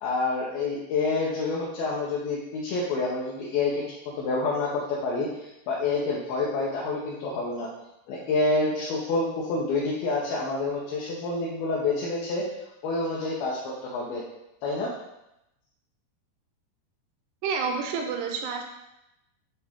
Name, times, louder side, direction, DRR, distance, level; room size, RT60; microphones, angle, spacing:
voice 1, 0.0-3.8 4.2-7.7 8.1-12.4 12.8-14.2 14.6-14.9, left 3 dB, 70° left, -5 dB, 2.4 m, -28 dB
voice 2, 17.4-18.6, right 5 dB, 80° right, 3 dB, 2.5 m, -29 dB
8.9 x 3.6 x 3.6 m, 0.87 s
omnidirectional pair, 5.0 m